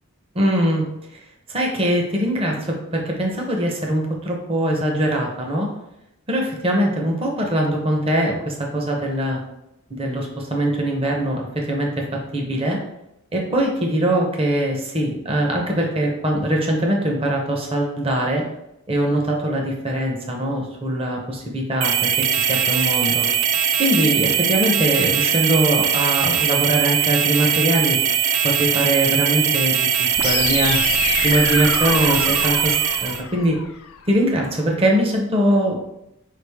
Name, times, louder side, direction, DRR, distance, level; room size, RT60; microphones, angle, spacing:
voice 1, 0.3-0.9 1.1-1.2 1.5-5.7 6.3-9.4 9.9-12.0 12.3-12.8 13.3-18.4 18.9-22.1 22.4-23.3 23.8-28.0 28.4-30.8 31.2-33.6 34.1-35.8, right 1 dB, 25° right, 0 dB, 0.7 m, -22 dB
sound 1, 21.8-33.2, right 8 dB, 65° right, 0.4 m, -20 dB
sound 2, 30.2-34.2, left 7 dB, 75° left, 0.4 m, -27 dB
4.7 x 3.3 x 3.4 m, 0.86 s
head